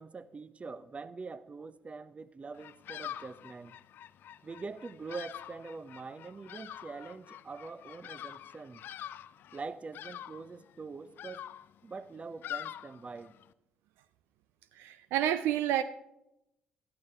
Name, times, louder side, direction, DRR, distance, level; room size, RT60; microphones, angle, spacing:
voice 1, 0.0-3.8 4.4-8.8 9.5-11.5 11.8-13.3, right 4 dB, 30° right, 15 dB, 0.7 m, -44 dB
Bird vocalization bird call bird song, 2.5-13.5, left 11 dB, 60° left, 0.4 m, -46 dB
voice 2, 14.8-15.8, right 11 dB, 70° right, 12 dB, 0.4 m, -29 dB
13.0 x 12.0 x 3.4 m, 0.85 s
hypercardioid pair, 45°, 4 cm